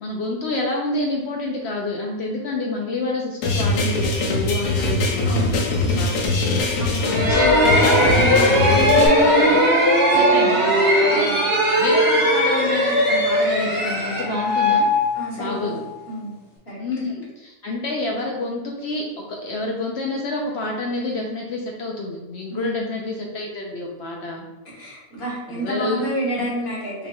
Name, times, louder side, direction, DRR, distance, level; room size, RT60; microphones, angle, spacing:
voice 1, 0.0-6.1 6.5-9.6 10.1-14.9 15.3-15.8 16.8-24.5 25.5-26.0, left 2 dB, 70° left, 0 dB, 0.6 m, -28 dB
sound 1, 3.4-9.1, left 2 dB, 85° left, 1.3 m, -22 dB
voice 2, 5.2-6.0 6.8-7.1 10.1-10.7 11.1-11.5 15.1-15.7 16.1-16.4 16.7-16.8 22.5-22.9 24.7-27.1, right 1 dB, 45° left, -6 dB, 1.5 m, -30 dB
sound 2, 7.0-15.7, equal, 45° right, 1.5 m, -18 dB
5.1 x 2.9 x 2.3 m, 1.1 s
omnidirectional pair, 1.6 m